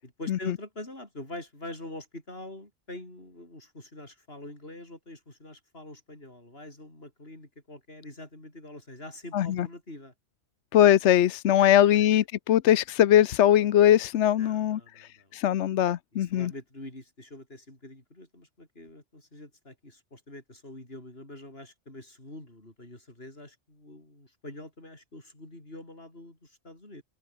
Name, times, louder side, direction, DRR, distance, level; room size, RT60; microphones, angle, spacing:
voice 1, 0.0-10.1 11.6-12.0 14.4-15.3 16.1-27.0, left 1 dB, 60° left, 6.5 m, -45 dB
voice 2, 9.3-9.7 10.7-16.5, left 11 dB, 80° left, 1.0 m, -21 dB
open air
omnidirectional pair, 1.2 m